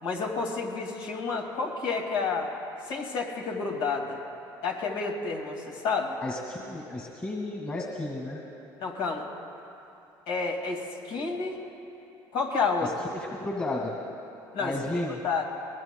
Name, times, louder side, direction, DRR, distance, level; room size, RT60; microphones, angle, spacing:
voice 1, 0.0-2.5 2.9-4.2 4.6-6.2 8.8-9.3 10.3-11.6 12.3-12.9 14.5-14.7 15.2-15.5, left 4 dB, 80° left, 1 dB, 2.2 m, -30 dB
voice 2, 6.2-8.4 12.8-14.0 14.6-15.2, left 2 dB, 25° left, 0 dB, 1.9 m, -33 dB
21.0 x 21.0 x 2.3 m, 2.8 s
supercardioid pair, 90°, 9 cm